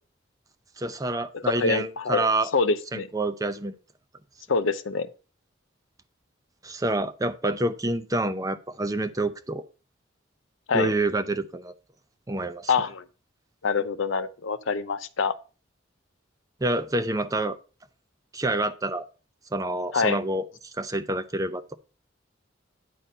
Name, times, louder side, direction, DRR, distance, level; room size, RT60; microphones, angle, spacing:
voice 1, 0.8-2.5 2.9-3.7 6.6-9.6 10.7-11.7 12.3-12.7 16.6-17.6 18.3-19.1 19.5-20.4 20.7-21.7, right 2 dB, 20° right, 0.6 m, -27 dB
voice 2, 1.3-2.2 2.5-3.1 4.5-5.1 10.7-10.9 12.7-13.0 13.6-15.3 19.9-20.2, left 4 dB, 85° left, 0.7 m, -25 dB
9.3 x 4.2 x 5.4 m
head